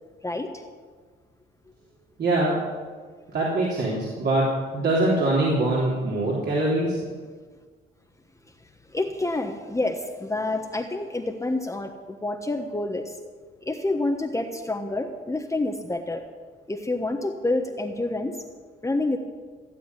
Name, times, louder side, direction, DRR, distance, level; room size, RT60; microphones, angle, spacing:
voice 1, 2.2-2.6 3.3-7.0, right 2 dB, 55° right, -5 dB, 3.6 m, -23 dB
voice 2, 8.9-11.9 12.2-13.1 13.7-16.2 16.7-18.4 18.8-19.2, left 2 dB, 15° left, 2 dB, 1.2 m, -28 dB
15.5 x 7.9 x 9.9 m, 1.6 s
cardioid pair, 90°, 20 cm